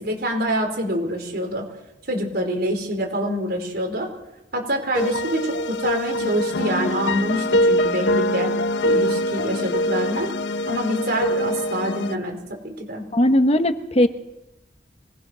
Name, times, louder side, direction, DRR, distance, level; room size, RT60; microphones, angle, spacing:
voice 1, 0.0-1.6 2.1-4.1 4.5-8.5 8.8-10.3 10.7-12.4 12.6-13.1, equal, 65° right, 3 dB, 4.9 m, -25 dB
sound 1, 4.9-12.2, left 1 dB, 90° left, 0.8 m, -23 dB
voice 2, 13.1-14.1, left 1 dB, 35° left, 8 dB, 1.2 m, -18 dB
24.5 x 19.5 x 6.2 m, 0.91 s
head